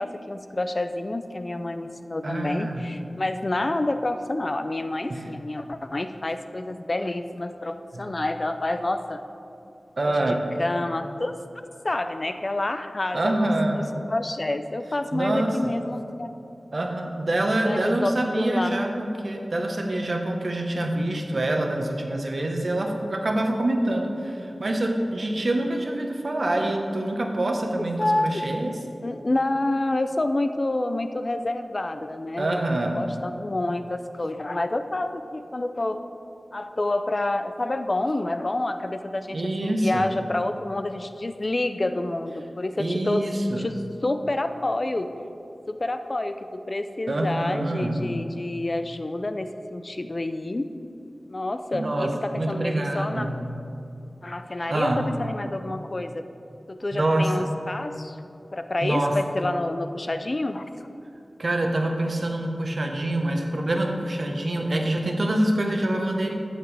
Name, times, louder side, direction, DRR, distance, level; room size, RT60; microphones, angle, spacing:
voice 1, 0.0-9.2 10.1-11.3 11.8-13.8 14.1-16.3 17.6-18.8 28.0-28.4 29.0-32.6 32.9-36.0 36.5-43.3 43.6-43.7 44.0-45.1 45.7-50.7 51.3-53.3 54.2-56.2 56.7-58.2 58.5-60.7, left 2 dB, 40° left, 9 dB, 0.4 m, -28 dB
voice 2, 2.2-2.9 5.1-5.3 7.9-8.1 10.0-10.4 13.1-13.8 15.1-15.7 16.7-28.7 32.4-33.0 39.3-40.1 42.8-43.7 47.1-48.1 51.7-53.4 54.7-55.1 56.9-57.4 58.8-59.1 61.4-66.3, right 1 dB, 55° right, 2 dB, 1.1 m, -26 dB
13.0 x 9.1 x 3.4 m, 2.7 s
wide cardioid pair, 85°, 0 cm